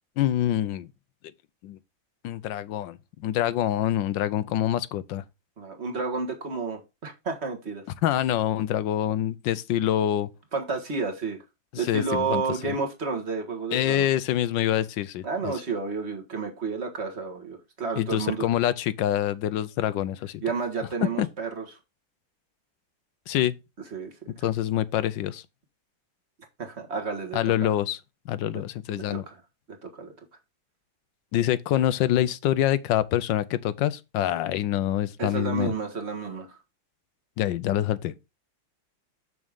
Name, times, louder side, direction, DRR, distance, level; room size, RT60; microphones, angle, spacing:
voice 1, 0.2-0.9 1.6-1.8 2.2-5.2 8.0-10.3 11.7-12.7 13.7-15.5 18.0-20.4 21.0-21.3 23.3-23.5 24.4-25.4 27.3-28.0 28.3-29.2 31.3-35.7 37.4-38.1, left 12 dB, 80° left, 1.3 m, -26 dB
voice 2, 5.6-7.8 10.5-11.4 11.8-14.1 15.2-18.5 20.4-21.6 23.9-24.1 26.6-27.7 28.5-28.6 28.9-29.4 29.8-30.1 35.2-36.5, right 4 dB, 35° right, 1.6 m, -31 dB
7.2 x 6.2 x 3.6 m
omnidirectional pair, 2.1 m